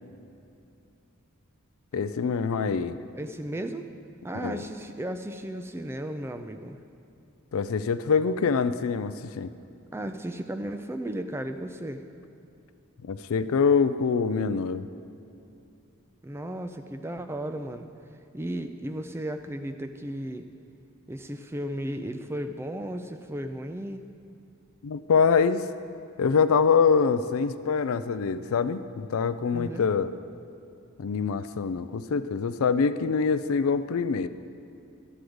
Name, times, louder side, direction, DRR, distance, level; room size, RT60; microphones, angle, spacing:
voice 1, 1.9-3.0 4.3-4.6 7.5-9.5 13.0-14.8 24.8-25.6 26.2-30.1 31.0-34.3, left 5 dB, 75° left, 13 dB, 0.4 m, -24 dB
voice 2, 3.1-3.9 4.2-6.8 9.9-12.0 16.2-17.9 18.3-20.5 21.1-24.0 29.5-29.9, right 1 dB, 10° right, 7 dB, 0.3 m, -35 dB
12.0 x 4.9 x 7.8 m, 2.7 s
head